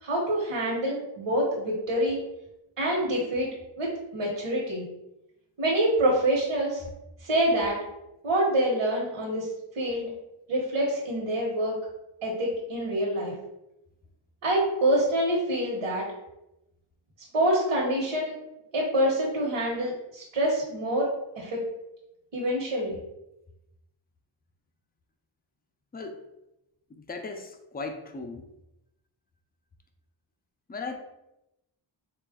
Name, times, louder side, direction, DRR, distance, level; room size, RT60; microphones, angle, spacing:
voice 1, 0.0-2.2 2.8-3.5 3.8-4.8 5.6-6.8 7.2-7.8 8.2-9.4 9.8-10.1 10.5-11.7 12.2-13.3 14.4-16.0 17.3-18.3 18.7-21.1 21.4-21.6 22.3-22.9, right 1 dB, 90° right, -4 dB, 1.1 m, -26 dB
voice 2, 26.9-28.5 30.7-31.0, left 3 dB, 20° left, 5 dB, 0.3 m, -37 dB
3.8 x 2.4 x 3.5 m, 0.90 s
wide cardioid pair, 145°, 49 cm